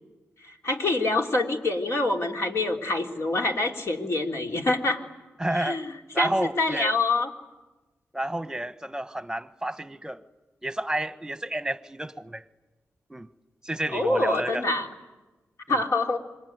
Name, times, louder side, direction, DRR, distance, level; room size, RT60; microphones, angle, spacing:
voice 1, 0.4-5.0 5.5-7.3 13.9-14.9 15.7-16.2, left 2 dB, 60° left, 3.3 m, -26 dB
voice 2, 5.4-5.8 6.1-7.0 8.1-10.2 10.6-12.4 13.1-13.3 13.6-14.6 15.7-15.8, right 1 dB, 10° right, 1.2 m, -30 dB
26.5 x 23.0 x 9.4 m
cardioid pair, 65°, 5 cm